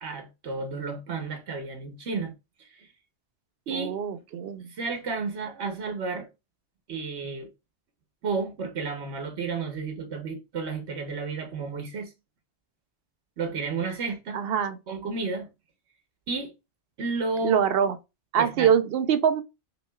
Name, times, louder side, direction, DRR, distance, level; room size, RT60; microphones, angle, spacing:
voice 1, 0.0-2.3 2.6-2.9 3.7-4.0 4.7-6.3 6.9-7.5 8.2-12.1 13.4-14.4 14.9-15.5 16.3-16.5 17.0-17.6 18.4-18.7, right 4 dB, 90° right, 1.2 m, -32 dB
voice 2, 3.7-4.7 14.3-14.8 17.4-18.0 18.3-19.4, right 8 dB, 65° right, 0.8 m, -24 dB
5.8 x 3.1 x 2.3 m
omnidirectional pair, 1.1 m